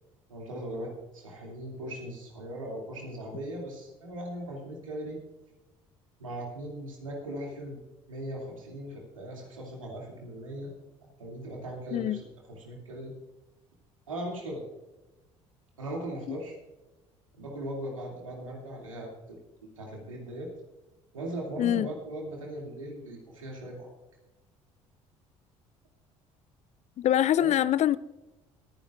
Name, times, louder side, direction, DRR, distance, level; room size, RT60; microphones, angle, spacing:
voice 1, 0.3-5.2 6.2-7.8 8.1-10.7 11.2-13.1 14.1-14.6 15.8-16.6 17.4-19.4 19.8-20.5 21.1-23.9 27.4-27.5, right 1 dB, 85° right, -1 dB, 2.6 m, -39 dB
voice 2, 27.0-28.0, left 11 dB, 45° left, 18 dB, 0.5 m, -24 dB
23.0 x 10.0 x 2.5 m, 1.1 s
figure-of-eight pair, 55°, 16 cm